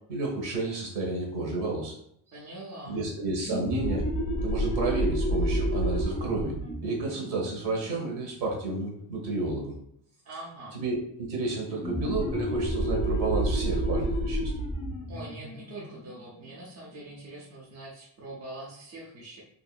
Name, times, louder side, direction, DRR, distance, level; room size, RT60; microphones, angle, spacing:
voice 1, 0.1-1.9 2.9-4.0 4.4-6.5 6.8-9.7 10.7-14.5, right 3 dB, 60° right, -1 dB, 1.2 m, -31 dB
voice 2, 2.3-3.0 10.2-10.8 15.1-19.4, right 2 dB, 35° right, -5 dB, 0.6 m, -43 dB
sound 1, 3.4-8.7 11.8-17.1, right 1 dB, 15° left, 0.3 m, -30 dB
2.8 x 2.4 x 2.3 m, 0.70 s
cardioid pair, 155°, 45 cm